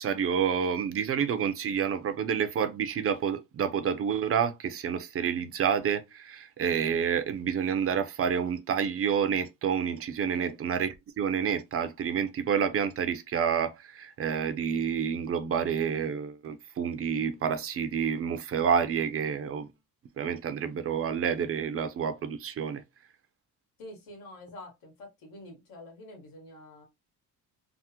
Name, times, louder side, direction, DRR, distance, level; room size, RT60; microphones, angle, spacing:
voice 1, 0.0-19.7 20.2-22.8, right 7 dB, 40° right, 0.4 m, -29 dB
voice 2, 23.8-26.8, left 1 dB, 85° left, 1.7 m, -47 dB
3.5 x 2.0 x 2.8 m
cardioid pair, 145°, 35 cm